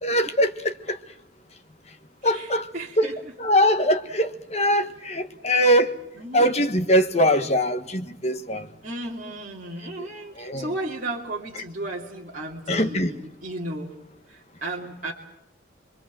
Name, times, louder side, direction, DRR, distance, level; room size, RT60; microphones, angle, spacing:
voice 1, 0.0-1.0 2.2-2.7 3.0-3.1 3.4-5.9 6.3-8.7 10.4-10.7 12.7-13.1, equal, 30° left, 8 dB, 1.3 m, -22 dB
voice 2, 2.2-3.2 6.2-6.5 8.8-13.9 14.3-15.1, right 1 dB, 40° right, -4 dB, 2.8 m, -34 dB
29.5 x 22.0 x 7.6 m, 0.82 s
head